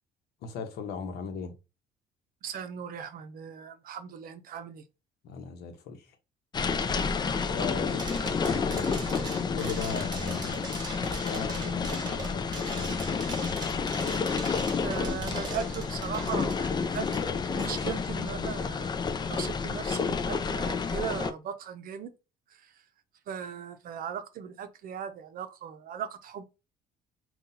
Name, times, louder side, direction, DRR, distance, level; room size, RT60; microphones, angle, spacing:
voice 1, 0.4-1.5 5.2-6.1 7.5-10.7 11.2-13.1, left 5 dB, 75° left, 0.9 m, -38 dB
voice 2, 2.4-4.8 7.6-8.0 14.8-17.1 17.5-19.0 19.3-22.1 23.3-26.4, right 8 dB, 55° right, 0.6 m, -38 dB
sound 1, 6.5-21.3, left 5 dB, 25° left, 0.4 m, -30 dB
sound 2, 8.0-18.0, right 2 dB, 25° right, 1.3 m, -41 dB
5.5 x 2.3 x 2.7 m
cardioid pair, 110°, 17 cm